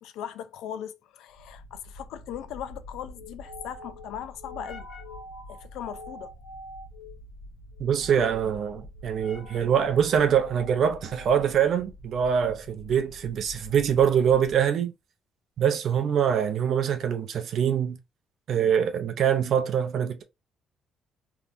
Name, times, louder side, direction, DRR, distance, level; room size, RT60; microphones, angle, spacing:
voice 1, 0.0-4.9 5.5-6.3, left 10 dB, 85° left, 0.4 m, -39 dB
sound 1, 1.4-14.7, left 1 dB, 50° left, 1.5 m, -45 dB
voice 2, 7.8-14.9 15.6-18.0 18.5-20.2, right 8 dB, 50° right, 0.5 m, -24 dB
3.4 x 2.8 x 2.5 m
cardioid pair, 170°, 0 cm